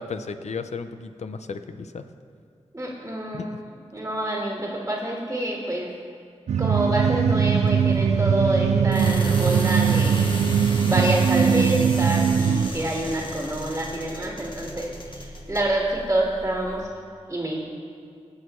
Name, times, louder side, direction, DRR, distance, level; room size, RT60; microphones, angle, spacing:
voice 1, 0.0-2.1 3.3-3.6, left 4 dB, 75° left, 9 dB, 0.6 m, -34 dB
voice 2, 2.7-3.5 3.9-5.9 6.6-10.3 10.8-16.8 17.3-17.7, right 1 dB, 20° right, -2 dB, 1.7 m, -27 dB
sound 1, 6.5-12.7, right 7 dB, 80° right, 0.4 m, -21 dB
sound 2, 6.7-16.8, left 1 dB, 45° left, 1.3 m, -37 dB
19.0 x 6.5 x 3.1 m, 2.3 s
cardioid pair, 50°, 12 cm